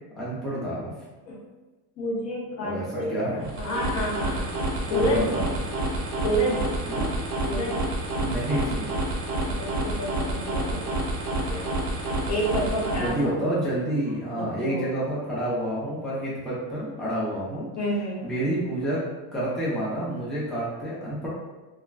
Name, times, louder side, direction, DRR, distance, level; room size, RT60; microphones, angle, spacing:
voice 1, 0.1-0.9 2.6-3.5 4.9-5.4 6.9-7.1 8.2-8.9 13.0-17.7 18.2-19.0 19.3-21.3, right 1 dB, ahead, -9 dB, 0.6 m, -29 dB
voice 2, 2.0-3.1 3.6-4.5 4.8-5.2 6.2-6.7 7.5-7.9 9.4-10.8 11.5-13.4 14.3-14.9 17.8-18.2, equal, 35° left, -4 dB, 0.9 m, -29 dB
sound 1, 3.4-13.3, right 1 dB, 45° right, 0.6 m, -29 dB
2.4 x 2.2 x 3.1 m, 1.2 s
cardioid pair, 140°, 44 cm